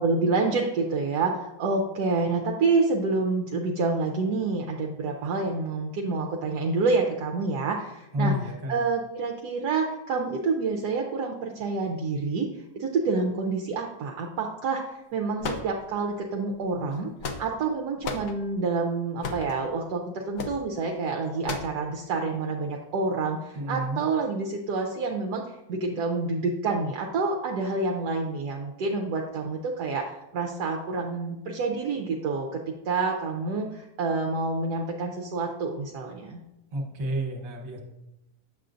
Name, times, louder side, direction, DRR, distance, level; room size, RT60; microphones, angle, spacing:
voice 1, 0.0-8.3 8.7-17.1 17.4-36.4, right 3 dB, 75° right, 1 dB, 1.2 m, -28 dB
voice 2, 8.1-8.8 23.5-24.0 36.7-37.8, equal, 55° right, 1 dB, 1.6 m, -30 dB
sound 1, 15.4-16.2 16.9-17.7 18.0-18.3 19.2-19.6 20.4-20.6 21.5-21.8, left 4 dB, 60° left, 1.1 m, -33 dB
7.7 x 6.7 x 2.5 m, 0.90 s
omnidirectional pair, 1.7 m